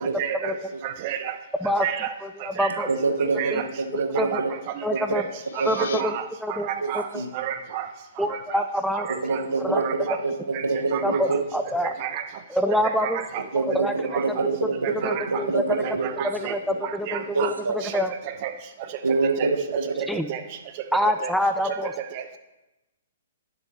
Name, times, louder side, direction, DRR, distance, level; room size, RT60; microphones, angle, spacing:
voice 1, 0.2-0.5 0.8-1.3 1.8-2.1 2.6-2.7 3.4-3.6 4.2-4.5 5.1-5.2 5.6-6.2 6.5-7.1 7.3-7.9 8.5-8.6 8.9-9.4 9.7-10.2 10.5-10.6 10.9-11.4 12.0-12.2 13.0-13.4 14.1-14.5 15.0-15.2 15.8-16.6 17.1-17.5 17.8-17.9 18.4-18.5 19.4-19.5 20.3-20.4 21.2-21.3 22.1-22.2, right 10 dB, 40° right, 9 dB, 0.9 m, -31 dB
voice 2, 2.2-2.9 3.5-3.6 3.9-4.4 4.8-5.2 5.7-6.7 6.9-7.2 8.2-9.1 9.6-9.8 11.0-11.9 12.5-13.2 13.5-14.2 15.0-15.6 16.3-17.5 17.9-18.1 20.1-20.3 20.9-21.9, left 1 dB, ahead, 7 dB, 0.5 m, -26 dB
voice 3, 2.9-4.5 4.9-5.0 5.6-6.0 6.8-7.3 9.2-9.9 10.2-11.4 13.5-16.8 17.2-17.9 19.0-19.9, right 3 dB, 90° right, 6 dB, 1.1 m, -26 dB
sound 1, 5.2-6.0, left 7 dB, 65° left, 0.5 m, -39 dB
10.5 x 6.8 x 4.3 m, 1.0 s
hypercardioid pair, 130°, 0 cm